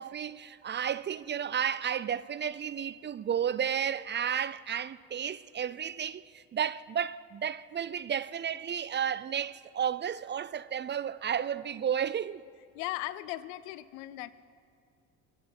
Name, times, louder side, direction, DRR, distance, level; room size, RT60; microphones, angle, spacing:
voice 1, 0.0-12.4, right 8 dB, 30° right, 0.4 m, -32 dB
voice 2, 12.7-14.3, left 17 dB, 85° left, 0.6 m, -37 dB
20.5 x 7.9 x 7.2 m
supercardioid pair, 65°, 39 cm